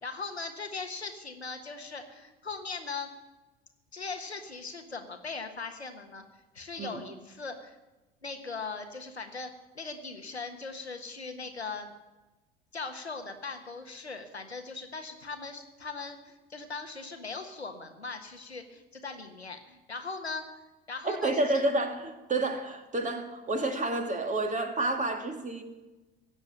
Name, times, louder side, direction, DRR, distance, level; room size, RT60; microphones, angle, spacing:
voice 1, 0.0-3.1 3.9-6.2 6.5-7.7 8.2-11.9 12.7-20.4 20.9-21.6, left 4 dB, 85° left, 6 dB, 1.4 m, -39 dB
voice 2, 21.0-25.6, right 2 dB, 25° right, 6 dB, 2.3 m, -29 dB
16.5 x 7.2 x 9.8 m, 1.1 s
figure-of-eight pair, 65°, 31 cm